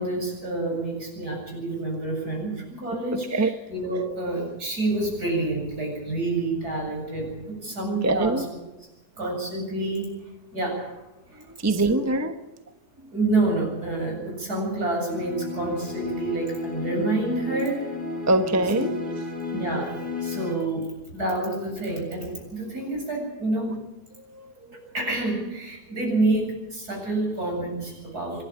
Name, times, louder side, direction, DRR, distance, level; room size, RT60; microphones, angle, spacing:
voice 1, 0.0-8.4 9.2-10.2 10.5-11.0 11.3-11.4 11.8-12.0 13.1-17.8 18.7-18.8 19.5-23.7 24.9-28.4, right 2 dB, 80° right, 0 dB, 8.4 m, -28 dB
voice 2, 3.1-3.5 8.0-8.5 11.3-12.5 18.3-18.9 24.3-24.5, right 2 dB, 10° right, 7 dB, 1.0 m, -24 dB
sound 1, 15.1-20.5, left 3 dB, 5° left, 6.8 m, -33 dB
25.5 x 12.0 x 8.8 m, 1.0 s
omnidirectional pair, 1.7 m